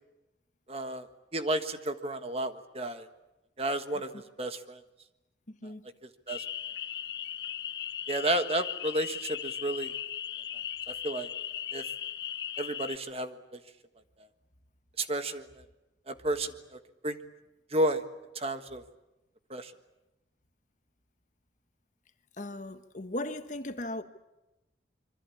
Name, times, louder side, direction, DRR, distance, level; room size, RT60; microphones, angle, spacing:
voice 1, 0.7-1.1 1.3-3.0 3.6-4.8 6.3-6.4 8.1-9.9 10.9-11.3 11.7-11.8 12.6-13.6 15.0-15.4 16.1-16.5 17.0-17.2 17.7-18.0 18.3-18.8 19.5-19.7, right 1 dB, 35° right, 1.5 m, -31 dB
voice 2, 5.5-5.9 22.4-24.0, left 1 dB, 45° left, 1.5 m, -37 dB
sound 1, 6.3-13.0, left 10 dB, 65° left, 1.5 m, -37 dB
26.0 x 24.0 x 8.6 m
head